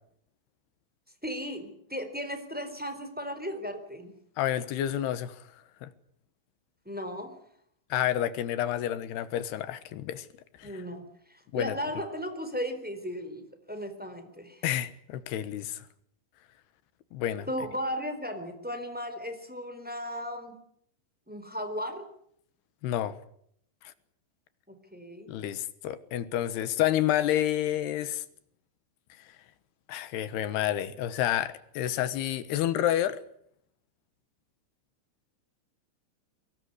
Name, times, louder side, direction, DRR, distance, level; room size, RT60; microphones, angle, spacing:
voice 1, 1.2-4.1 6.8-7.3 10.6-11.0 11.3-14.6 17.5-20.6 21.3-22.1 24.7-25.3, equal, ahead, 3.3 m, -36 dB
voice 2, 4.4-5.5 5.8-5.9 7.9-10.3 10.6-10.8 11.5-11.8 14.6-15.9 17.1-17.5 22.8-23.2 23.8-23.9 25.3-28.2 29.2-29.3 29.9-33.2, left 12 dB, 70° left, 3.1 m, -29 dB
24.0 x 19.5 x 9.8 m
omnidirectional pair, 5.2 m